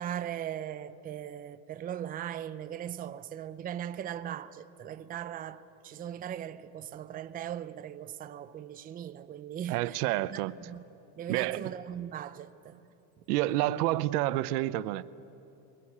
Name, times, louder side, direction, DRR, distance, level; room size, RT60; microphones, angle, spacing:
voice 1, 0.0-10.0 10.3-10.8 11.1-12.9, right 10 dB, 20° right, 0.6 m, -39 dB
voice 2, 9.7-10.5 11.3-11.7 13.3-15.0, right 16 dB, 80° right, 0.8 m, -29 dB
22.5 x 22.5 x 8.7 m
supercardioid pair, 135°, 45 cm